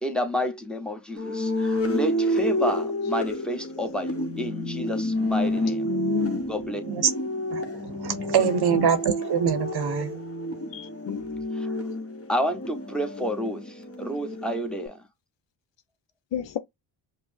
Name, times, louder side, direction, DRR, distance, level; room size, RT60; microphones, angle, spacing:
voice 1, 0.0-5.9 6.5-6.8 11.5-11.7 12.3-15.0, equal, ahead, 0.9 m, -30 dB
sound 1, 1.2-14.9, left 1 dB, 30° left, 1.0 m, -29 dB
voice 2, 5.8-6.5 8.1-8.6 10.7-11.2 16.3-16.6, left 11 dB, 60° left, 0.7 m, -31 dB
voice 3, 7.5-10.2, right 8 dB, 50° right, 0.8 m, -24 dB
5.2 x 2.0 x 2.6 m
supercardioid pair, 65°, 49 cm